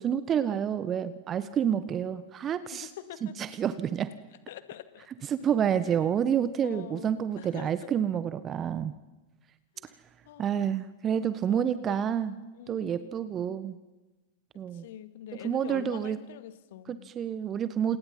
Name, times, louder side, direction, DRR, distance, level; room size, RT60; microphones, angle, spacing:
voice 1, 0.0-2.9 3.2-4.1 5.2-8.9 10.4-12.3 12.7-13.8 14.5-14.9 15.4-16.2 16.9-18.0, right 8 dB, 25° right, 13 dB, 1.4 m, -29 dB
voice 2, 2.7-3.3 4.5-5.1 6.6-7.1 7.4-7.9 9.8-9.9 10.3-10.6 11.5-12.0 12.5-12.9 14.7-17.1, left 12 dB, 55° left, 10 dB, 2.0 m, -45 dB
29.5 x 28.5 x 5.7 m, 1.1 s
figure-of-eight pair, 90°, 0 cm